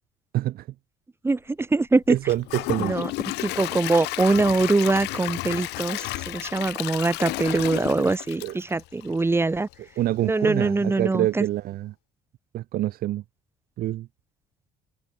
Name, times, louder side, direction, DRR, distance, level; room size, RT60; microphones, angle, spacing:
voice 1, 0.3-0.7 2.1-3.0 8.4-8.6 10.0-11.9 12.5-13.2 13.8-14.1, right 14 dB, 60° right, 0.6 m, -26 dB
voice 2, 1.2-2.2 2.8-3.1 3.4-9.7 10.2-11.5, right 3 dB, 15° right, 0.8 m, -23 dB
Gurgling / Toilet flush / Trickle dribble, 2.2-9.3 9.7-9.8 10.3-10.4, left 20 dB, 90° left, 1.9 m, -32 dB
cardioid pair, 110°, 17 cm